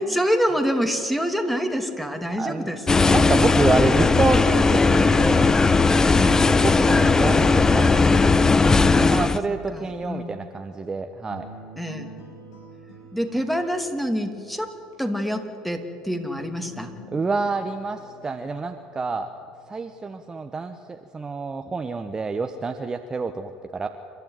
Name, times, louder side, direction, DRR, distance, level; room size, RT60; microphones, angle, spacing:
voice 1, 0.0-3.3 6.2-6.5 8.9-10.4 11.8-12.1 13.1-16.9, equal, ahead, 6 dB, 2.7 m, -27 dB
voice 2, 2.4-2.7 3.1-5.5 6.4-8.1 9.1-11.5 17.1-19.3 19.7-23.9, right 4 dB, 25° right, 6 dB, 1.2 m, -27 dB
sound 1, 2.9-9.4, left 4 dB, 20° left, 0.9 m, -17 dB
sound 2, 10.9-11.0 11.3-14.9 16.0-21.0, equal, 80° left, 5.2 m, -48 dB
29.0 x 12.0 x 9.4 m, 2.6 s
hypercardioid pair, 75°, 3 cm